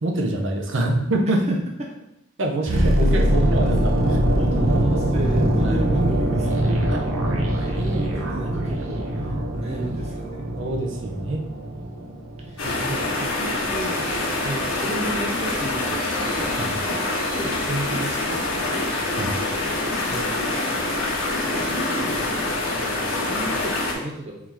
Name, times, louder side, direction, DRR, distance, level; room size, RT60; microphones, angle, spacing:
voice 1, 0.0-1.4 2.4-4.0 5.6-5.8 6.9-7.1 10.6-11.4 12.6-13.0 16.5-16.7 19.2-19.4, right 1 dB, 65° right, 1 dB, 0.7 m, -25 dB
voice 2, 1.3-1.9 2.6-3.9 4.3-10.5 12.4-14.1 14.4-16.8 17.2-18.9 20.0-20.6 21.6-22.5 22.9-24.5, right 1 dB, 30° right, -1 dB, 0.5 m, -34 dB
sound 1, 2.7-12.7 12.9-13.1, right 1 dB, 90° right, 0.9 m, -22 dB
sound 2, 12.6-23.9, left 2 dB, 85° left, 1.1 m, -25 dB
3.9 x 2.8 x 4.6 m, 0.81 s
head